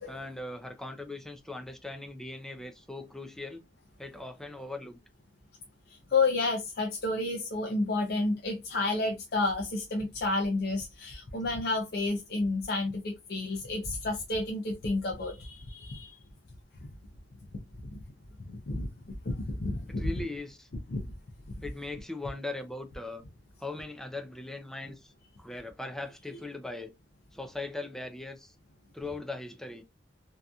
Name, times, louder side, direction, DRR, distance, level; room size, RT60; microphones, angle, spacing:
voice 1, 0.1-3.6 4.0-5.0 20.0-20.7 21.6-23.2 23.6-25.1 25.4-26.9 27.3-28.5 28.9-29.8, left 2 dB, 5° left, 0.3 m, -39 dB
voice 2, 6.1-16.1 18.4-20.1 20.9-21.0, left 3 dB, 55° left, 0.5 m, -30 dB
2.7 x 2.5 x 2.2 m
head